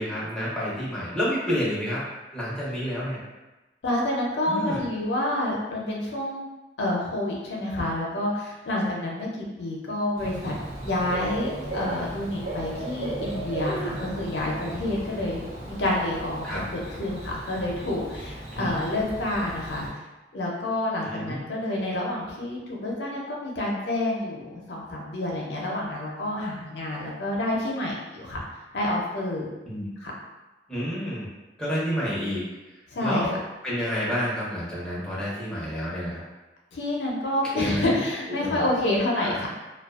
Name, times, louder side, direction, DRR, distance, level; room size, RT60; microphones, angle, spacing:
voice 1, 0.0-2.0 2.3-3.2 4.4-4.8 16.4-16.6 18.5-18.8 21.0-21.4 29.7-29.9 30.7-31.3 31.6-32.4 33.0-36.2 37.5-37.9 38.4-38.6 39.2-39.4, equal, 5° left, -8 dB, 0.6 m, -29 dB
voice 2, 3.8-6.4 6.8-10.5 10.8-15.4 15.7-20.0 20.3-28.4 28.7-29.5 30.0-30.1 32.9-33.3 36.7-39.5, left 1 dB, 75° left, -2 dB, 0.5 m, -28 dB
Bird / Cricket, 10.2-19.9, right 1 dB, 80° right, 1.0 m, -35 dB
2.4 x 2.2 x 2.3 m, 1.1 s
head